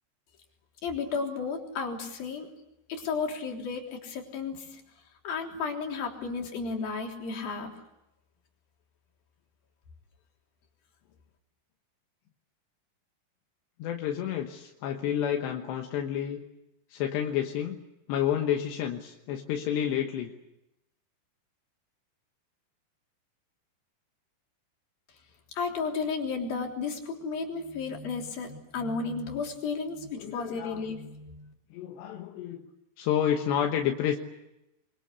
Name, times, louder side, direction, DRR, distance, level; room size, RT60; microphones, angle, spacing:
voice 1, 0.8-2.5 2.9-4.8 5.2-7.7 25.6-31.5, left 4 dB, 60° left, 1 dB, 5.2 m, -33 dB
voice 2, 13.8-16.4 16.9-17.8 18.1-20.3 30.1-30.9 31.7-32.6 33.0-34.2, left 9 dB, 85° left, 3 dB, 3.5 m, -30 dB
28.5 x 23.5 x 8.3 m, 0.90 s
omnidirectional pair, 4.9 m